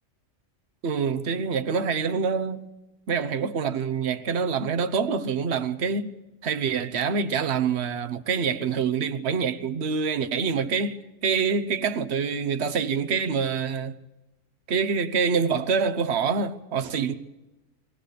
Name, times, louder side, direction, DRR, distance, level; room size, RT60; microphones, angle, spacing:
voice 1, 0.8-2.6 3.1-6.1 6.4-13.9 14.7-17.2, right 6 dB, 55° right, 1.2 m, -26 dB
22.5 x 18.5 x 6.7 m
omnidirectional pair, 1.3 m